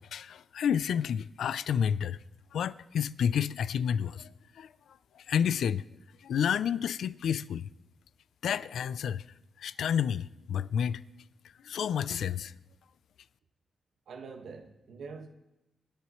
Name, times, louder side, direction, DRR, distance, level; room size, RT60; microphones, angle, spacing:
voice 1, 0.0-2.2 2.5-4.3 4.6-4.7 5.2-5.8 6.2-7.7 8.4-9.2 9.6-11.0 11.6-12.6, left 8 dB, 90° left, 0.4 m, -30 dB
voice 2, 14.1-15.3, right 5 dB, 80° right, 1.7 m, -44 dB
25.5 x 10.5 x 3.2 m
wide cardioid pair, 125°, 0 cm